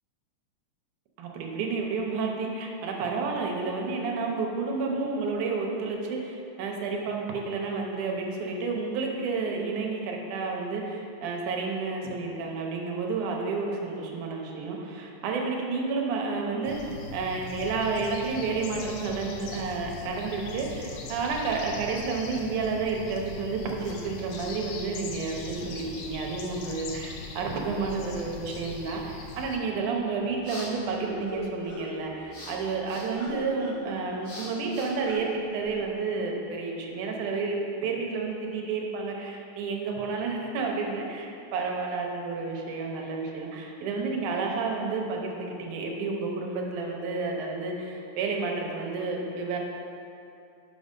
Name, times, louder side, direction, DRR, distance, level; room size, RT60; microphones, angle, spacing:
voice 1, 1.2-49.6, right 4 dB, 80° right, 0 dB, 2.2 m, -30 dB
sound 1, 16.6-29.6, left 3 dB, 80° left, 2.2 m, -40 dB
sound 2, 29.9-35.8, equal, 40° left, 2.0 m, -42 dB
5.7 x 5.3 x 5.1 m, 2.6 s
omnidirectional pair, 3.6 m